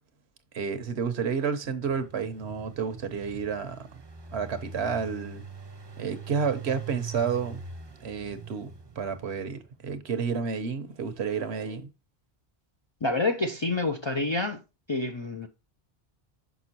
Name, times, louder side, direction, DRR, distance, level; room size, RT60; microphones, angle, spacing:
voice 1, 0.5-3.9 4.3-5.4 6.0-7.6 8.0-11.9, right 6 dB, 80° right, 1.2 m, -30 dB
Engine, 1.8-9.7, right 5 dB, 30° right, 0.7 m, -43 dB
voice 2, 13.0-14.6 14.9-15.5, left 2 dB, 45° left, 0.4 m, -28 dB
6.1 x 5.8 x 2.8 m
omnidirectional pair, 1.1 m